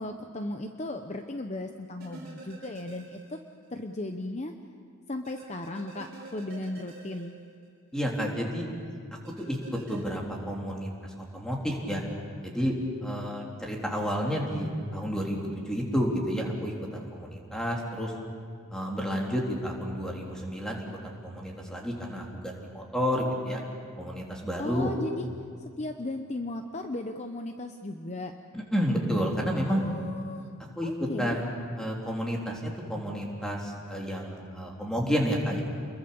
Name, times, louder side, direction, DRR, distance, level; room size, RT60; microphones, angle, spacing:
voice 1, 0.0-3.4 3.7-4.5 5.1-7.3 24.6-25.3 25.8-28.3 29.7-30.5 30.8-31.4, left 2 dB, 30° left, 5 dB, 0.9 m, -36 dB
sound 1, 2.0-3.7 4.0-4.1 5.2-8.1 9.2-10.0, right 3 dB, 45° right, 4.5 m, -48 dB
voice 2, 7.9-8.7 9.4-10.9 11.2-12.0 12.4-12.7 13.0-18.1 18.7-23.6 24.0-24.9 28.5-29.8 30.7-35.6, equal, 5° left, -2 dB, 3.4 m, -30 dB
29.5 x 22.0 x 7.0 m, 2.2 s
head